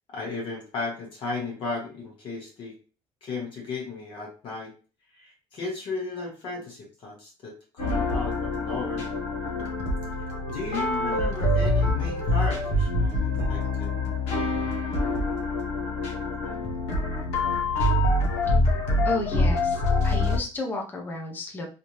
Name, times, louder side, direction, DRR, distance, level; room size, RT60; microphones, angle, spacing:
voice 1, 0.1-2.8 3.2-4.7 5.1-9.0 10.5-13.9 17.8-17.9, left 3 dB, 55° left, -2 dB, 1.3 m, -35 dB
sound 1, 7.8-20.4, left 2 dB, 80° left, 1.0 m, -25 dB
voice 2, 19.0-21.7, left 2 dB, 15° left, 0 dB, 0.7 m, -33 dB
3.3 x 2.7 x 3.0 m, 0.36 s
cardioid pair, 140°, 11 cm